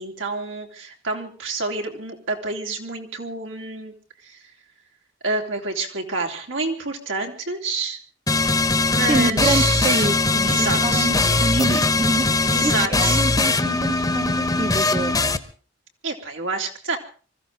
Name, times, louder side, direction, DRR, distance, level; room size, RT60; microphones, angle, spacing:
voice 1, 0.0-3.9 4.3-4.4 5.2-8.0 8.9-10.1 10.5-11.1 12.4-13.2 16.0-17.0, right 3 dB, 85° right, 2 dB, 3.6 m, -28 dB
sound 1, 8.3-15.4, left 3 dB, 20° left, 1.0 m, -20 dB
voice 2, 9.1-15.2, right 2 dB, 30° right, 8 dB, 1.0 m, -26 dB
24.5 x 15.0 x 3.9 m, 0.39 s
head